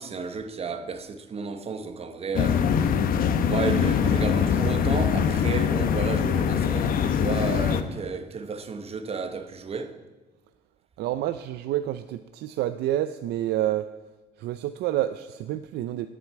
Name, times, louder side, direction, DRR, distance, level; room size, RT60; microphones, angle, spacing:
voice 1, 0.0-2.8 3.4-10.0, right 4 dB, 35° right, 1.2 m, -32 dB
sound 1, 2.3-7.8, left 7 dB, 60° left, 0.9 m, -23 dB
voice 2, 11.0-13.9 14.4-16.1, right 13 dB, 75° right, 0.5 m, -28 dB
9.5 x 7.4 x 8.9 m
cardioid pair, 110°, 17 cm